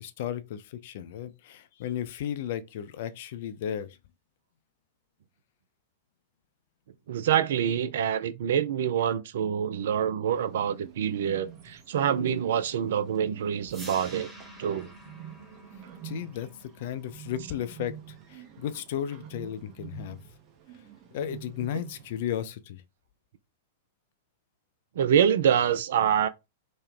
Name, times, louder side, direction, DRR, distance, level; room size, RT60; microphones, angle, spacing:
voice 1, 0.0-4.0 16.0-18.0 18.3-20.2 21.1-22.8, left 10 dB, 50° left, 0.4 m, -34 dB
voice 2, 7.1-14.3 14.6-14.9 25.0-26.3, right 9 dB, 55° right, 0.3 m, -26 dB
Bird, 10.3-22.4, right 10 dB, 35° right, 0.8 m, -48 dB
sound 1, 13.7-19.7, right 1 dB, 10° right, 1.2 m, -49 dB
3.1 x 2.1 x 3.5 m
figure-of-eight pair, 95°, 0 cm